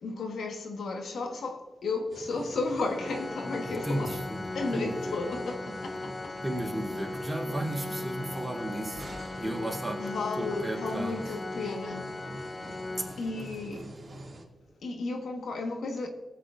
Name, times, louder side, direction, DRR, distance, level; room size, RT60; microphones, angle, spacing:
voice 1, 0.0-4.2 4.5-6.4 10.0-12.1 13.2-13.8 14.8-16.1, left 3 dB, 85° left, 1.3 m, -33 dB
sound 1, 2.1-14.4, right 1 dB, 35° right, 2.1 m, -45 dB
Organ, 2.9-13.8, left 2 dB, 30° left, 0.4 m, -38 dB
voice 2, 3.6-5.2 5.9-6.0 6.4-11.4 13.0-13.1 13.8-14.0, right 1 dB, 10° right, 3.1 m, -35 dB
19.5 x 8.6 x 2.5 m
wide cardioid pair, 95°, 0 cm